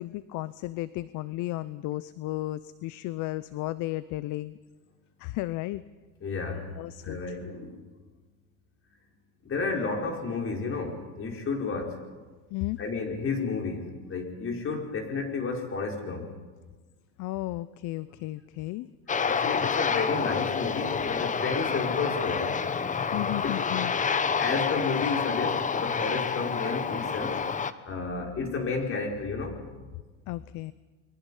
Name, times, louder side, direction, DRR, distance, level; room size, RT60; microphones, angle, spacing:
voice 1, 0.0-4.6 5.2-5.8 6.8-7.2 12.5-12.8 17.2-18.9 23.1-23.9 30.3-30.7, left 17 dB, 55° left, 17 dB, 0.7 m, -34 dB
voice 2, 6.2-6.6 7.0-7.7 9.5-11.9 12.8-16.2 19.3-22.5 23.4-23.6 24.4-27.4 27.9-29.5, left 4 dB, 35° left, 2 dB, 5.0 m, -31 dB
Aircraft, 19.1-27.7, left 6 dB, 20° left, 1.0 m, -28 dB
29.0 x 22.5 x 5.6 m, 1.3 s
supercardioid pair, 105°, 36 cm